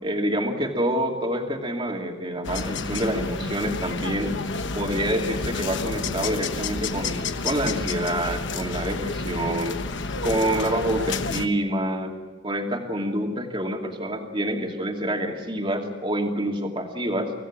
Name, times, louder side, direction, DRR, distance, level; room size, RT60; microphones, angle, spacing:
voice 1, 0.0-4.4 4.7-9.7 10.2-12.1 12.4-17.3, right 1 dB, 25° right, 2 dB, 2.7 m, -27 dB
sound 1, 2.4-11.5, left 3 dB, 55° left, 1.2 m, -30 dB
25.5 x 17.5 x 7.5 m, 1.3 s
head